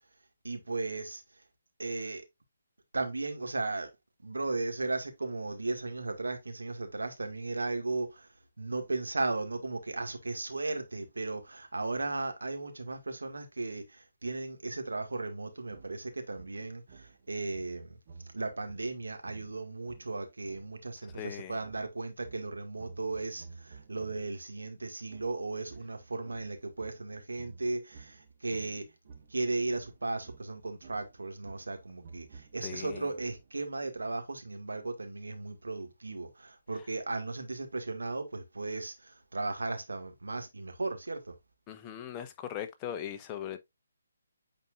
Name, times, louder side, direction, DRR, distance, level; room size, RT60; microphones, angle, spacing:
voice 1, 0.4-1.2 1.8-2.3 2.9-3.9 4.2-8.3 8.6-18.0 18.3-28.9 29.3-41.4, right 3 dB, 80° right, 1.8 m, -36 dB
sound 1, 15.7-24.4 25.1-33.7, right 4 dB, 40° right, 1.5 m, -53 dB
voice 2, 21.1-21.6 32.6-33.1 41.7-43.6, left 10 dB, 20° left, 0.8 m, -39 dB
9.0 x 4.3 x 2.4 m
figure-of-eight pair, 150°, 0 cm